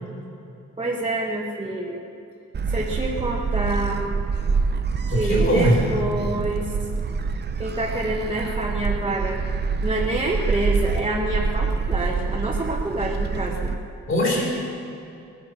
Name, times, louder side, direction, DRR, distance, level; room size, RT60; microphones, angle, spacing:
voice 1, 0.8-2.0 2.7-4.1 5.1-6.7 7.6-9.4 9.8-13.7, right 2 dB, 20° right, -3 dB, 1.1 m, -27 dB
Gull seagull, 2.5-13.7, right 4 dB, 35° right, 0.7 m, -26 dB
voice 2, 5.1-5.8 6.3-6.4 14.1-14.5, equal, 45° left, -3 dB, 4.4 m, -21 dB
19.5 x 11.0 x 6.8 m, 2.6 s
wide cardioid pair, 170°, 30 cm